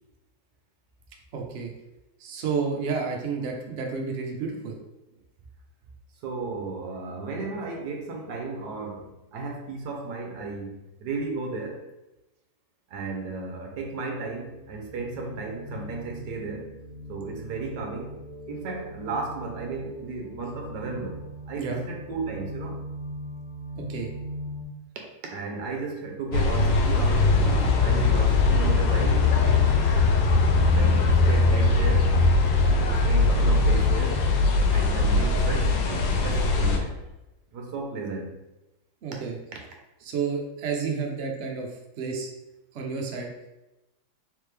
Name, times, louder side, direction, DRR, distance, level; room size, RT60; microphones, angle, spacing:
voice 1, 1.3-1.7 2.2-4.8 21.6-21.8 23.8-24.1 35.2-35.3 39.0-39.4 40.0-41.7 42.0-42.3 42.7-43.3, right 5 dB, 85° right, 0 dB, 0.6 m, -30 dB
voice 2, 6.2-11.8 12.9-16.8 17.1-18.2 18.5-22.8 25.2-29.3 30.6-32.1 32.6-34.3 34.7-36.9 37.5-38.4, right 4 dB, 65° right, 1 dB, 1.2 m, -34 dB
sound 1, 14.6-24.6, equal, 30° left, 0.7 m, -40 dB
sound 2, 26.3-36.8, left 3 dB, 80° left, 1.3 m, -21 dB
3.6 x 3.5 x 3.2 m, 0.98 s
omnidirectional pair, 2.1 m